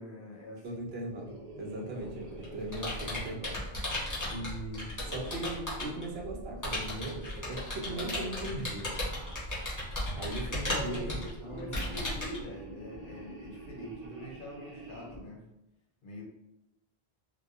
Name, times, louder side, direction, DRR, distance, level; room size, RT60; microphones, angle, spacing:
voice 1, 0.0-0.8 10.7-15.5 16.0-16.2, equal, 60° left, -2 dB, 0.7 m, -44 dB
voice 2, 0.6-3.6 4.3-8.9 10.1-11.7, right 1 dB, 70° right, 0 dB, 0.8 m, -39 dB
sound 1, 1.0-5.6 6.1-7.2 7.5-8.4 8.8-9.9 10.6-15.3, right 2 dB, 45° right, 0.4 m, -47 dB
Computer keyboard, 2.0-6.0 6.6-12.4, left 1 dB, 20° left, 0.6 m, -35 dB
2.8 x 2.1 x 2.4 m, 0.86 s
omnidirectional pair, 1.1 m